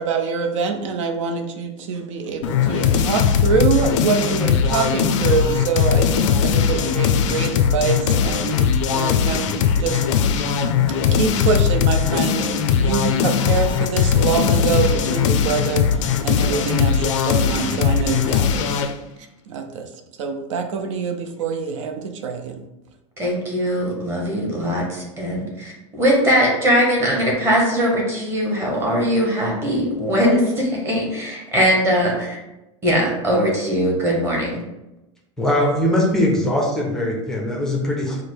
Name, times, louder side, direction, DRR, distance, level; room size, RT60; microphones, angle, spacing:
voice 1, 0.0-9.5 9.8-10.0 10.9-18.8 19.5-19.9 20.2-22.6, right 5 dB, 75° right, 5 dB, 0.7 m, -25 dB
sound 1, 2.4-18.9, left 7 dB, 70° left, 0.4 m, -19 dB
voice 2, 23.2-32.4 32.8-34.6, equal, 15° right, -3 dB, 0.9 m, -20 dB
voice 3, 35.4-38.2, left 1 dB, 5° left, -2 dB, 0.5 m, -21 dB
4.9 x 2.0 x 4.5 m, 0.95 s
supercardioid pair, 175°, 16 cm